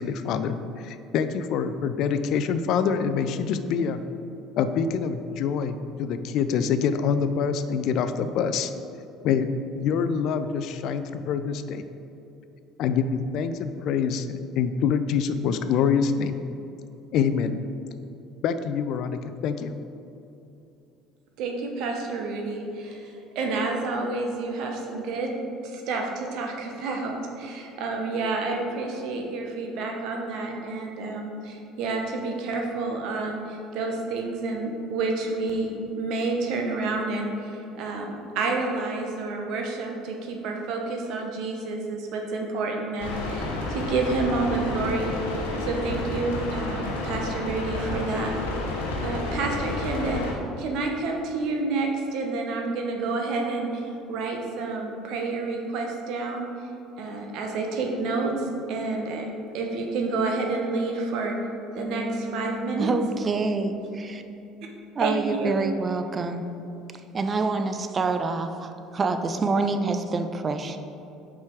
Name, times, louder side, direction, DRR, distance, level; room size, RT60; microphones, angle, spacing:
voice 1, 0.0-4.0 4.6-8.7 9.2-9.5 9.8-11.8 12.8-16.4 17.1-17.5 18.4-19.7, left 6 dB, 60° left, 10 dB, 0.3 m, -25 dB
voice 2, 21.4-25.3 25.6-45.1 45.6-48.3 49.0-50.2 50.6-56.5 57.0-59.2 59.5-61.4 61.7-62.9 65.0-65.5, right 3 dB, 65° right, 1 dB, 0.9 m, -29 dB
sound 1, 43.0-50.3, left 2 dB, 85° left, 0.9 m, -30 dB
Bass guitar, 61.8-65.5, left 2 dB, 25° left, 1.0 m, -38 dB
voice 3, 62.8-64.2 64.9-66.4 67.1-70.8, right 3 dB, 35° right, 8 dB, 0.5 m, -26 dB
5.6 x 4.9 x 4.5 m, 2.8 s
hypercardioid pair, 65°, 0 cm